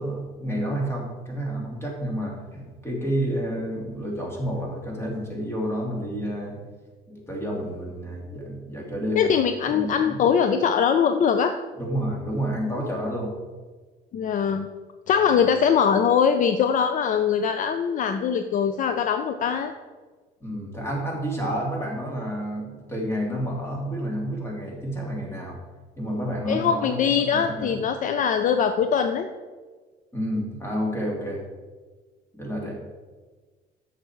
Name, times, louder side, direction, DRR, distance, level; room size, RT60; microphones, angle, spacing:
voice 1, 0.0-6.6 7.1-9.3 9.7-10.2 11.7-13.3 20.4-25.6 26.0-27.8 30.1-31.4 32.3-32.7, equal, 15° left, -2 dB, 2.7 m, -30 dB
voice 2, 9.2-11.5 14.1-14.7 15.1-19.7 26.5-29.3, left 7 dB, 50° left, 8 dB, 0.5 m, -22 dB
8.7 x 6.7 x 4.6 m, 1.4 s
cardioid pair, 110°, 17 cm